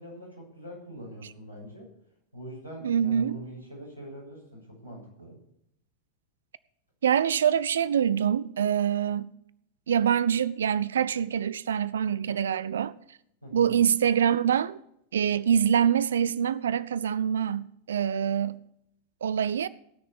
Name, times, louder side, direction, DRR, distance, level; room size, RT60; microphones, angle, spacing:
voice 1, 0.0-1.9 2.3-5.4 13.4-13.8, equal, 85° left, 7.1 m, -43 dB
voice 2, 2.8-3.4 7.0-9.3 9.9-12.9 13.5-14.8 15.1-18.6 19.2-19.7, right 8 dB, 65° right, 0.5 m, -25 dB
17.5 x 6.5 x 7.0 m
figure-of-eight pair, 90°, 0 cm